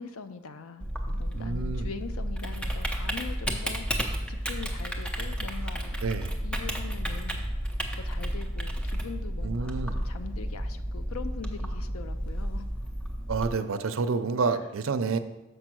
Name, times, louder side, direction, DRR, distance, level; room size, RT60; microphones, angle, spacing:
voice 1, 0.0-3.8 4.3-6.0 6.4-7.4 7.9-12.7 14.5-14.6, left 5 dB, 85° left, 10 dB, 0.6 m, -42 dB
Typing, 0.8-13.5, equal, 5° left, 0.6 m, -32 dB
voice 2, 1.3-1.9 6.0-6.3 9.4-9.9 13.3-15.2, right 4 dB, 75° right, 10 dB, 0.5 m, -29 dB
6.7 x 5.4 x 6.1 m, 1.1 s
head